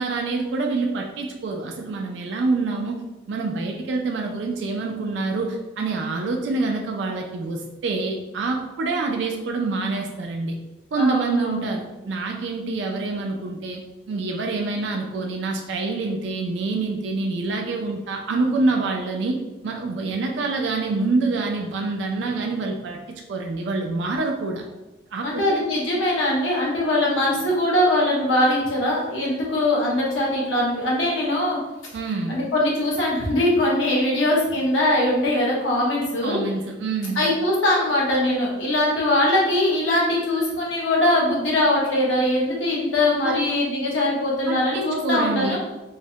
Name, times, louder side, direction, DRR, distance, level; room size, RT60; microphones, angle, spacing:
voice 1, 0.0-3.0 3.3-10.6 10.9-19.4 19.6-24.6 25.1-25.7 31.9-32.3 36.2-37.2 43.2-43.5 44.5-45.6, right 3 dB, 70° right, 2 dB, 0.3 m, -26 dB
voice 2, 11.0-11.7 25.2-31.6 32.3-36.4 37.2-45.6, left 1 dB, 85° left, -4 dB, 0.9 m, -21 dB
3.1 x 2.1 x 2.7 m, 1.1 s
head